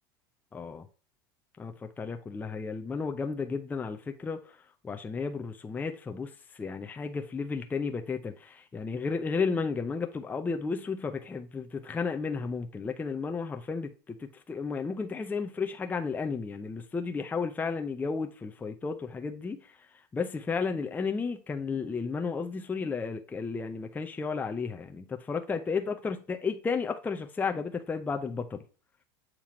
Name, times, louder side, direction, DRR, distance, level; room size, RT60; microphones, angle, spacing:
voice 1, 0.5-0.9 1.6-4.6 4.8-28.6, left 5 dB, 15° left, 0.5 m, -33 dB
7.4 x 3.0 x 5.0 m
supercardioid pair, 110°, 12 cm